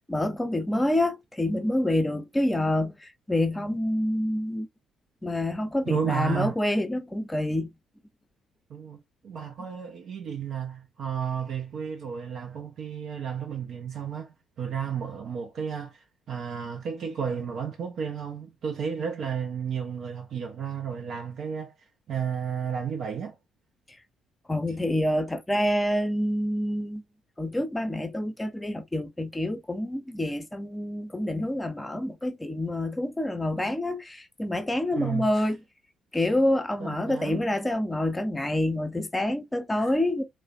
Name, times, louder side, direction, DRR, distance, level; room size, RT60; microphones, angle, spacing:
voice 1, 0.1-4.7 5.2-7.7 24.5-27.0 27.4-35.6 36.1-40.2, left 1 dB, 15° left, 0.5 m, -27 dB
voice 2, 5.9-6.5 8.7-23.4 35.0-35.5 36.8-37.4 39.7-39.9, right 7 dB, 50° right, 0.3 m, -33 dB
3.1 x 2.1 x 2.3 m
figure-of-eight pair, 45°, 0 cm